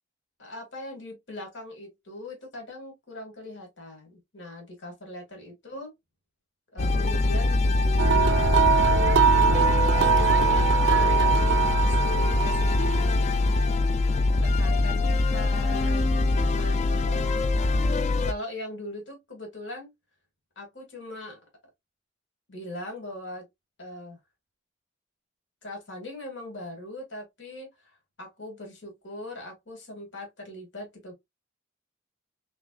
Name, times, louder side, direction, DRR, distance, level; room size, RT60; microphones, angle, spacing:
voice 1, 0.4-5.9 6.7-8.9 9.3-13.7 14.3-17.4 18.2-19.9 20.6-21.4 22.5-23.5 23.8-24.2 25.6-31.1, left 1 dB, 80° left, 1.8 m, -41 dB
sound 1, 6.8-18.3, left 2 dB, 35° left, 0.4 m, -23 dB
sound 2, 8.0-13.1, right 6 dB, 70° right, 0.4 m, -23 dB
3.7 x 3.3 x 2.3 m
head